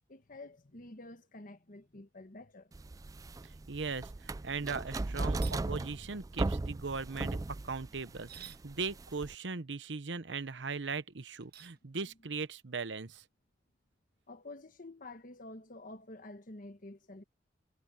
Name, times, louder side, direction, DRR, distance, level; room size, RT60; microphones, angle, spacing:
voice 1, 0.1-2.7 14.3-17.2, left 2 dB, 50° left, 1.3 m, -49 dB
sound 1, 2.7-9.3, right 2 dB, 20° right, 0.3 m, -37 dB
voice 2, 3.4-7.4 7.6-13.2, right 4 dB, 85° right, 0.9 m, -39 dB
sound 2, 5.4-5.6 8.1-8.6 11.4-11.8, right 11 dB, 60° right, 1.3 m, -50 dB
head